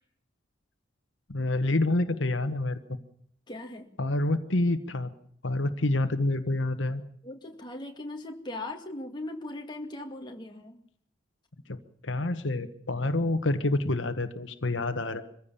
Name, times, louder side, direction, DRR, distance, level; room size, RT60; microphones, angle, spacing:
voice 1, 1.3-2.8 4.0-5.1 5.4-7.0 11.7-11.8 12.0-15.2, left 2 dB, 75° left, 9 dB, 1.3 m, -27 dB
voice 2, 3.5-4.0 7.2-10.8, left 2 dB, 25° left, 2 dB, 2.3 m, -39 dB
24.5 x 15.5 x 7.0 m, 0.68 s
head